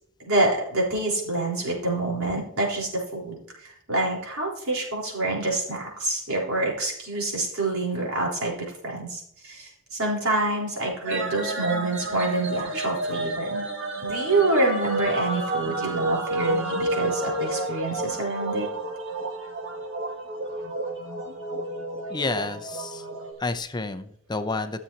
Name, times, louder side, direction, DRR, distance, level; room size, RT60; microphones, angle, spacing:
voice 1, 0.2-8.6 8.8-13.6 14.0-18.7, right 2 dB, 85° right, -3 dB, 4.1 m, -27 dB
sound 1, 11.0-23.3, right 1 dB, 60° right, 1.5 m, -30 dB
voice 2, 22.1-23.1 23.4-24.8, left 3 dB, 20° left, 9 dB, 0.5 m, -30 dB
14.0 x 7.1 x 2.9 m, 0.70 s
head